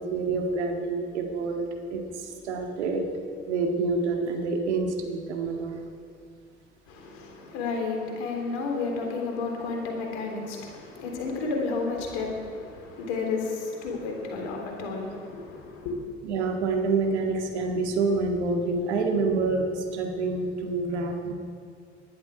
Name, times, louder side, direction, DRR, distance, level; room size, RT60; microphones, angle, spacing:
voice 1, 0.0-3.1 3.5-5.8 16.2-21.3, right 3 dB, 75° right, 2 dB, 2.0 m, -27 dB
voice 2, 6.9-16.0, left 4 dB, 70° left, 2 dB, 3.2 m, -32 dB
19.0 x 11.5 x 5.0 m, 2.3 s
figure-of-eight pair, 50°, 34 cm